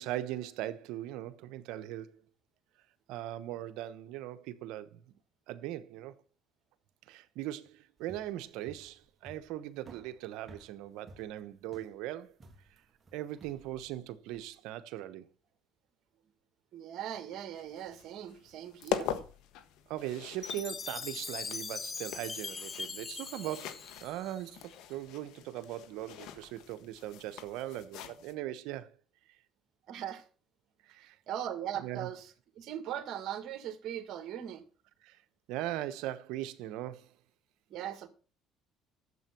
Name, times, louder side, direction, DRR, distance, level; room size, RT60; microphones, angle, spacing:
voice 1, 0.0-2.2 3.1-5.0 5.5-6.1 7.1-12.4 13.1-15.3 19.9-28.9 30.9-31.2 31.8-32.1 35.0-35.2 35.5-37.1, right 13 dB, 80° right, 1.1 m, -40 dB
sound 1, 8.0-14.5, right 3 dB, 30° right, 2.2 m, -56 dB
voice 2, 16.7-19.1 29.9-30.2 31.3-32.3 32.6-34.6 37.7-38.1, right 10 dB, 60° right, 2.0 m, -39 dB
sound 2, 17.5-28.3, left 9 dB, 75° left, 1.4 m, -43 dB
Chime, 20.4-24.7, left 5 dB, 30° left, 0.9 m, -41 dB
12.5 x 7.9 x 6.1 m
cardioid pair, 100°, 0 cm